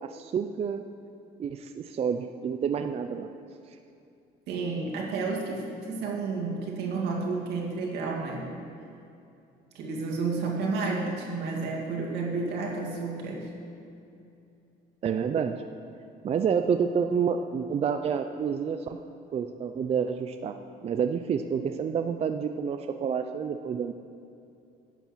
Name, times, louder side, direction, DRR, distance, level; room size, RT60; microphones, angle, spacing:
voice 1, 0.0-0.8 1.4-3.3 15.0-15.6 16.2-19.0 19.3-20.5 20.8-23.9, right 7 dB, 35° right, 7 dB, 0.4 m, -28 dB
voice 2, 4.5-8.5 9.7-13.5, right 4 dB, 80° right, -2 dB, 2.2 m, -31 dB
11.0 x 7.1 x 5.9 m, 2.6 s
cardioid pair, 110°, 17 cm